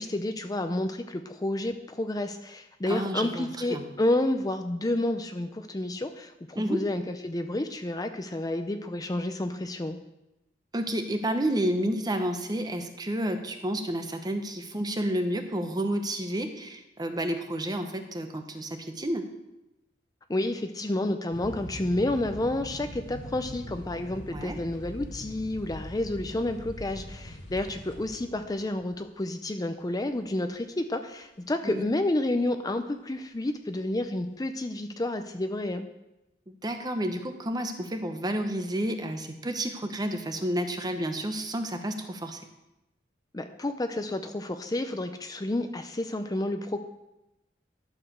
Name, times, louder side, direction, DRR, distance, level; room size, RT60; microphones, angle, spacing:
voice 1, 0.0-10.0 20.3-35.9 43.3-46.8, left 1 dB, 20° left, 7 dB, 0.5 m, -30 dB
voice 2, 2.8-3.8 6.5-6.8 10.7-19.3 24.3-24.6 31.6-31.8 36.6-42.4, right 1 dB, 20° right, 6 dB, 0.9 m, -30 dB
sound 1, 21.3-29.1, left 1 dB, 75° left, 1.5 m, -42 dB
11.5 x 5.0 x 6.6 m, 0.93 s
head